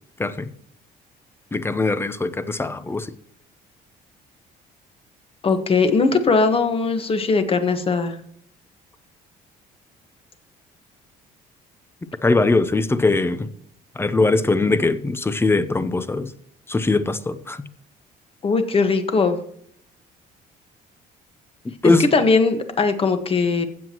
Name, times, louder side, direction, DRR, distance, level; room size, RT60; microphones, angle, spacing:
voice 1, 1.5-3.1 12.2-13.5 14.0-16.3 16.7-17.6 21.8-22.1, left 3 dB, 15° left, 0.7 m, -21 dB
voice 2, 5.4-8.2 18.4-19.4 22.1-23.6, left 4 dB, 35° left, 1.5 m, -19 dB
15.5 x 7.7 x 3.0 m
cardioid pair, 110°, 17 cm